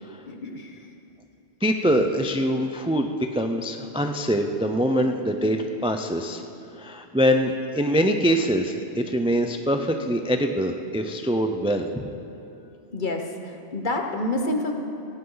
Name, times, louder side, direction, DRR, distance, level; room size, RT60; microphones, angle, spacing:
voice 1, 0.3-0.8 12.9-14.7, left 2 dB, 40° left, 3 dB, 1.3 m, -28 dB
voice 2, 1.6-6.4 6.8-12.0, equal, 10° right, 5 dB, 0.3 m, -24 dB
17.5 x 16.0 x 4.0 m, 2.8 s
omnidirectional pair, 1.3 m